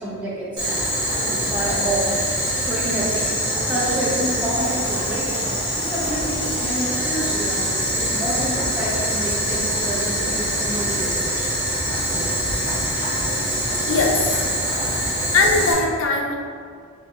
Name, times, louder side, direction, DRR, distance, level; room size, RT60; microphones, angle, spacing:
voice 1, 0.0-2.1 2.6-3.4 3.7-11.5, right 1 dB, 5° right, -8 dB, 0.7 m, -28 dB
Boiling, 0.6-15.7, right 1 dB, 60° right, 1.2 m, -24 dB
sound 1, 3.0-14.5, left 2 dB, 30° left, 0.9 m, -38 dB
voice 2, 13.9-14.2 15.3-16.4, left 3 dB, 80° left, 1 dB, 0.4 m, -19 dB
3.7 x 2.2 x 2.9 m, 2.1 s
head